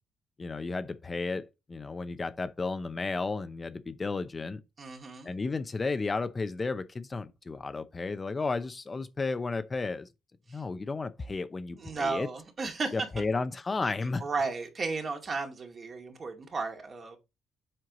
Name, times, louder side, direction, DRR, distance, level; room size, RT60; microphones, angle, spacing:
voice 1, 0.4-4.6 5.2-10.1 10.5-12.3 12.9-14.2, left 3 dB, 30° left, 0.7 m, -33 dB
voice 2, 4.8-5.3 11.8-12.9 14.2-17.2, right 4 dB, 45° right, 2.3 m, -34 dB
7.7 x 4.6 x 3.9 m
cardioid pair, 90°, 0 cm